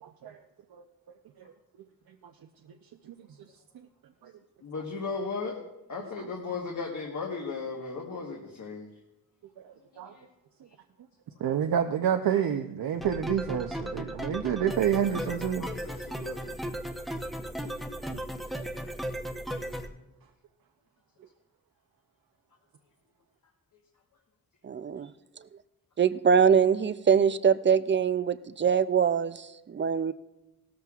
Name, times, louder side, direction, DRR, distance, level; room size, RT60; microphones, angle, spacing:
voice 1, 0.0-0.4 0.7-0.8 3.1-3.2 4.2-4.3 9.6-10.1 11.4-15.7, right 9 dB, 70° right, 5 dB, 0.7 m, -28 dB
voice 2, 4.6-5.6 5.9-8.9 10.0-10.2 15.6-16.6 17.6-17.7, left 4 dB, 55° left, 0 dB, 1.3 m, -36 dB
sound 1, 13.0-19.9, equal, ahead, 0.8 m, -36 dB
voice 3, 24.6-25.1 26.0-30.1, right 7 dB, 35° right, 14 dB, 0.4 m, -23 dB
17.5 x 13.5 x 2.4 m, 0.96 s
wide cardioid pair, 135°, 37 cm